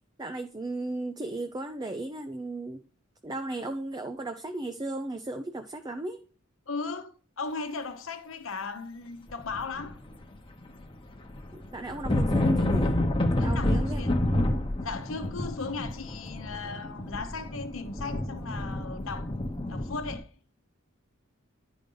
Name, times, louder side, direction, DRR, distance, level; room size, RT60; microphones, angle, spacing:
voice 1, 0.2-2.8 3.2-6.2 11.5-12.9 13.4-14.3, right 2 dB, 20° right, 0.5 m, -35 dB
voice 2, 6.7-10.0 13.4-14.2 14.8-19.3 19.7-20.3, left 4 dB, 70° left, 1.0 m, -37 dB
sound 1, 9.4-10.4 10.6-20.2, left 1 dB, 25° left, 1.0 m, -29 dB
10.5 x 5.1 x 3.9 m
head